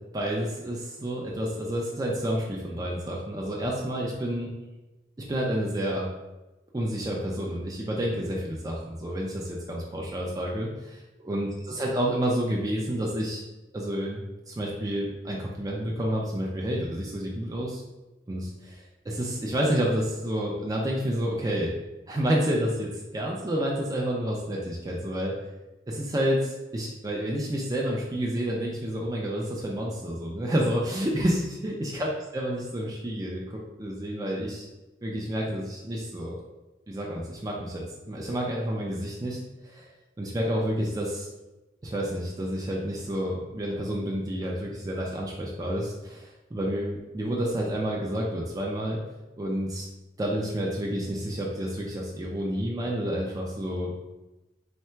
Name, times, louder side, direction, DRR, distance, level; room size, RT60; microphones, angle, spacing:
voice 1, 0.1-4.5 5.3-6.1 6.7-13.4 13.7-14.2 14.5-17.8 18.3-21.7 22.1-25.3 25.9-34.7 35.0-36.4 36.9-39.9 40.2-41.3 41.8-49.0 49.4-49.9 50.2-53.9, equal, 20° right, -2 dB, 0.4 m, -29 dB
3.6 x 2.2 x 4.4 m, 1.1 s
head